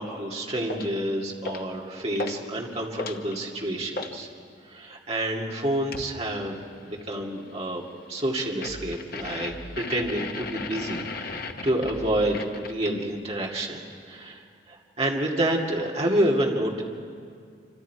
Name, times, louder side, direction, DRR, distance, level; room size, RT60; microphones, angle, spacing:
voice 1, 0.0-4.3 4.7-6.6 6.8-7.8 8.1-14.4 14.7-16.8, right 1 dB, 35° right, -2 dB, 2.3 m, -28 dB
sound 1, 0.7-1.0 1.4-1.8 2.1-2.4 2.8-4.2 5.9-6.2 8.6-13.1, left 3 dB, 50° left, 1.1 m, -36 dB
27.0 x 25.5 x 4.7 m, 2.2 s
head